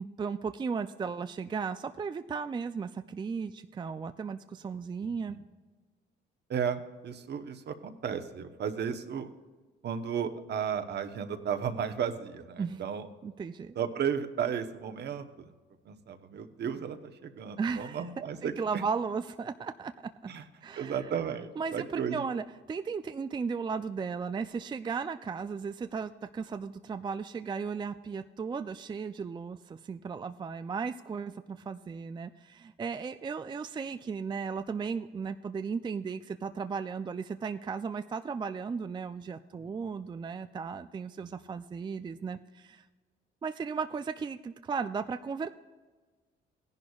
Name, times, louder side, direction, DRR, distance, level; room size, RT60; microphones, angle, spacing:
voice 1, 0.0-5.4 12.6-12.8 13.2-13.7 17.6-18.0 18.4-19.9 20.2-20.3 20.6-21.0 21.6-42.8 43.4-45.5, right 5 dB, 25° right, 9 dB, 0.3 m, -35 dB
voice 2, 5.0-5.4 6.5-9.3 9.8-13.1 13.7-15.5 15.8-18.8 20.3-20.4 20.7-22.2 39.5-39.9 41.2-41.3, right 7 dB, 55° right, 7 dB, 1.0 m, -34 dB
16.5 x 10.5 x 2.4 m, 1.4 s
cardioid pair, 90°, 20 cm